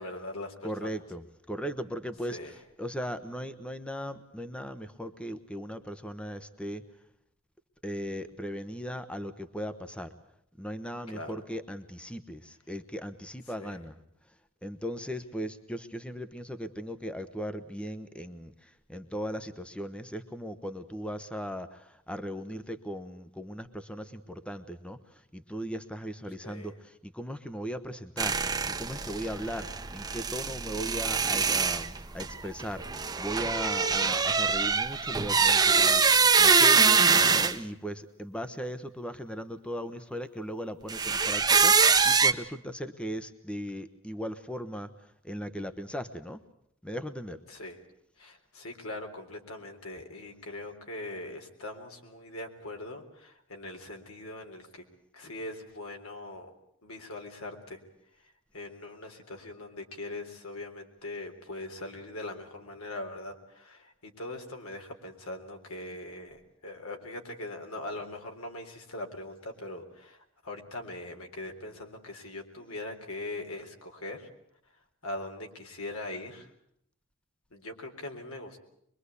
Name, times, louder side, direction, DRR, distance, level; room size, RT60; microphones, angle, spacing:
voice 1, 0.0-0.9 2.3-2.5 11.1-11.3 13.6-13.8 26.4-26.7 33.8-34.1 47.5-47.8 48.2-54.8 55.1-56.5 56.8-57.8 58.2-74.3 75.0-76.5 77.5-78.6, left 2 dB, 80° left, 3 dB, 3.8 m, -41 dB
voice 2, 0.6-6.8 7.8-10.1 10.6-14.0 14.6-46.4 46.8-47.4, equal, 5° left, 9 dB, 1.0 m, -38 dB
sound 1, 28.2-37.5 40.9-42.3, right 5 dB, 20° right, 1.1 m, -24 dB
23.5 x 23.0 x 8.3 m, 0.71 s
head